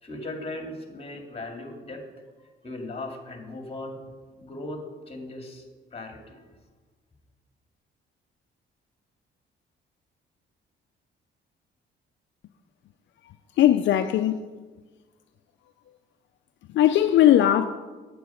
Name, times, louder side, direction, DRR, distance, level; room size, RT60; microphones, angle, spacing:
voice 1, 0.0-2.0 2.6-4.0 4.4-5.6 5.9-6.4, left 2 dB, 30° left, 2.2 m, -38 dB
voice 2, 13.6-14.5 16.7-17.7, left 11 dB, 70° left, 0.5 m, -19 dB
9.3 x 8.6 x 5.7 m
cardioid pair, 90°, 20 cm